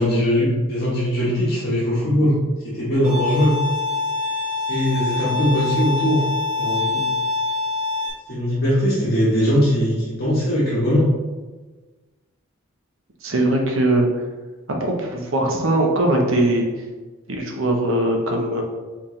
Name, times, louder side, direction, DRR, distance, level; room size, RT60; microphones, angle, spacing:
voice 1, 0.0-2.4 2.6-3.5 4.7-6.2 6.6-7.0 8.3-11.1, equal, 45° left, -9 dB, 1.3 m, -20 dB
Bowed string instrument, 3.0-8.1, left 3 dB, 35° right, 1.1 m, -25 dB
voice 2, 13.2-14.1 14.8-16.7 17.3-18.6, right 1 dB, 70° right, 1 dB, 0.8 m, -20 dB
4.4 x 3.8 x 3.2 m, 1.3 s
head